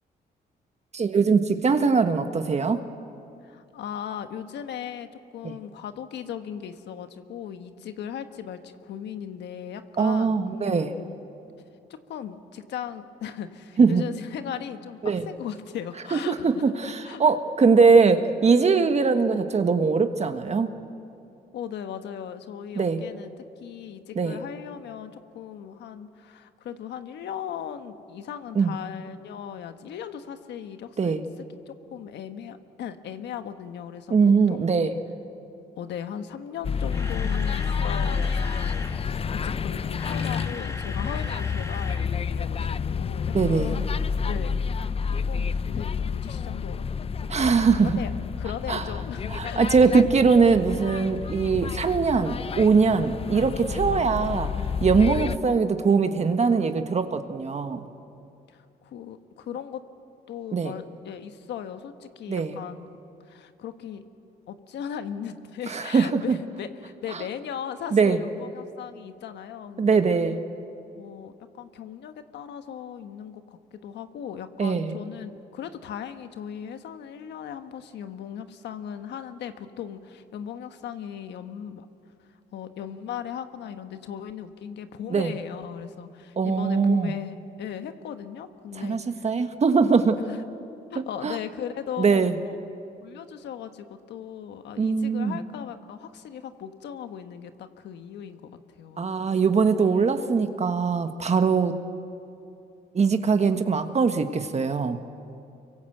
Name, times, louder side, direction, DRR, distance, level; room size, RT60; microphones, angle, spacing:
voice 1, 0.9-2.8 5.4-5.6 10.0-10.9 13.8-14.1 15.0-15.3 16.1-20.7 22.7-23.0 24.1-24.4 28.5-28.7 31.0-31.2 34.1-34.9 43.3-43.7 47.3-48.0 48.7-48.8 49.3-54.5 54.8-57.9 60.5-60.7 62.3-62.6 65.7-66.4 67.1-67.2 67.9-68.2 69.8-70.4 74.6-75.0 85.1-85.3 86.4-87.1 88.7-90.2 91.2-91.4 92.0-92.4 94.8-95.4 99.0-101.8 102.9-105.0, right 5 dB, 40° right, 8 dB, 1.4 m, -21 dB
voice 2, 3.4-11.2 11.9-16.6 17.0-17.2 21.5-23.3 23.6-31.1 31.7-34.9 35.8-44.0 44.2-46.9 47.2-49.7 58.5-59.8 60.3-62.9 63.3-64.0 64.5-70.0 70.9-81.9 82.5-89.2 90.2-90.4 90.9-92.6 93.0-99.2, left 8 dB, 80° left, 9 dB, 1.3 m, -38 dB
sound 1, 36.6-55.4, left 6 dB, 35° left, 0.6 m, -29 dB
Camera, 36.6-39.0 39.8-42.1 42.3-42.5 43.0-43.1, left 2 dB, 15° left, 1.9 m, -40 dB
25.0 x 23.5 x 7.9 m, 2.6 s
cardioid pair, 85°, 18 cm